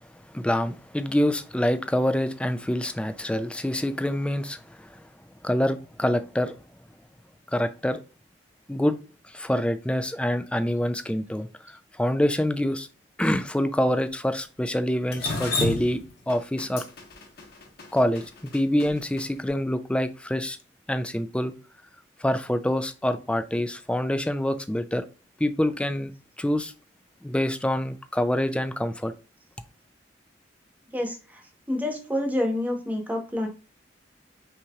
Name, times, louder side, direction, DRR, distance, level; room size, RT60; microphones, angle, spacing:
voice 1, 0.3-5.0 5.4-6.6 7.5-8.0 8.7-9.0 9.3-11.5 12.0-12.9 13.2-16.0 16.3-16.8 17.9-20.6 20.9-21.5 22.2-25.0 25.4-26.1 26.4-26.7 27.2-29.1, left 1 dB, 5° left, 0.4 m, -26 dB
Drip, 15.1-19.2, left 2 dB, 60° left, 1.3 m, -30 dB
voice 2, 31.7-33.5, left 1 dB, 10° right, 1.1 m, -27 dB
5.7 x 3.0 x 2.4 m
head